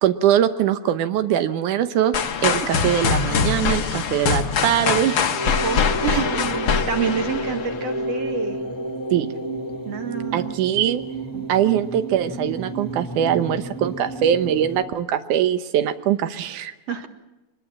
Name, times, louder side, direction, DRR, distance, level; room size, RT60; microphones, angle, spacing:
voice 1, 0.0-2.2 2.4-5.2 6.0-6.4 9.1-9.3 10.3-11.0 11.5-16.7, right 10 dB, 85° right, 10 dB, 2.5 m, -22 dB
sound 1, 2.1-8.0, left 6 dB, 50° left, 1.8 m, -23 dB
sound 2, 5.3-14.8, right 1 dB, 5° left, 2.0 m, -31 dB
voice 2, 5.6-8.6 9.8-10.5 11.3-11.7 16.9-17.1, right 6 dB, 60° right, 6 dB, 2.9 m, -29 dB
25.0 x 21.0 x 7.4 m, 1.0 s
omnidirectional pair, 3.4 m